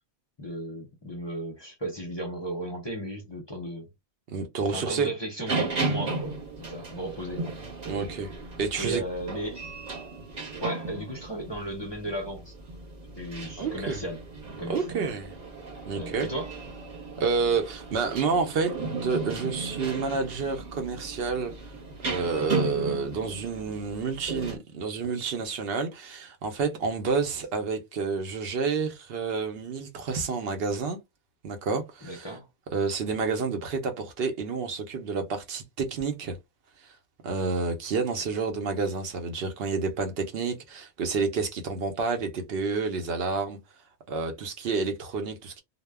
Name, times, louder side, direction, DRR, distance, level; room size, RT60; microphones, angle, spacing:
voice 1, 0.4-3.9 4.7-7.6 8.8-9.6 10.6-12.5 13.2-14.2 14.6-15.1 16.0-16.5 32.0-32.5, right 1 dB, 35° left, 0.5 m, -35 dB
voice 2, 4.3-5.1 7.9-8.3 8.6-9.0 13.6-14.0 14.7-15.3 15.9-16.3 17.2-18.7 19.0-21.5 22.0-31.0 31.4-32.3 32.7-36.4 37.2-43.6 44.1-45.6, right 4 dB, 70° right, 0.8 m, -29 dB
sound 1, 5.5-24.6, right 3 dB, 45° right, 0.9 m, -35 dB
2.1 x 2.1 x 3.3 m
omnidirectional pair, 1.1 m